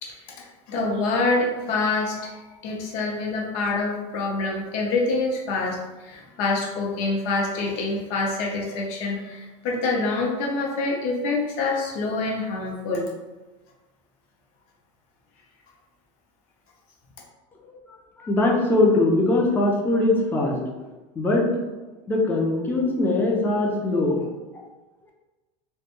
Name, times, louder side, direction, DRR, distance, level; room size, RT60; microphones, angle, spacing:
voice 1, 0.0-13.1, left 3 dB, 50° left, -1 dB, 0.6 m, -26 dB
voice 2, 18.2-20.8 21.2-21.5 22.1-24.3 24.5-24.6, left 2 dB, 10° left, -1 dB, 0.3 m, -21 dB
2.2 x 2.1 x 2.9 m, 1.2 s
supercardioid pair, 145°, 17 cm